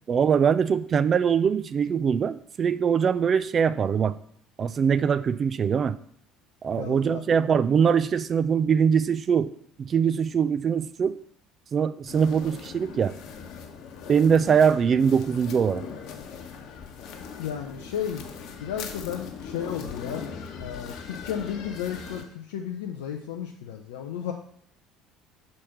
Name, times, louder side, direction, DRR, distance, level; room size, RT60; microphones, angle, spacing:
voice 1, 0.1-4.2 4.6-6.0 6.6-9.5 9.8-11.1 11.7-13.1 14.1-15.8, right 7 dB, 35° right, 15 dB, 0.4 m, -22 dB
voice 2, 6.8-7.2 17.4-18.2 18.6-20.2 20.6-24.3, left 9 dB, 65° left, 3 dB, 0.5 m, -33 dB
sound 1, 12.1-22.2, left 6 dB, 50° left, 1.0 m, -40 dB
6.5 x 4.3 x 5.6 m, 0.64 s
figure-of-eight pair, 60°, 0 cm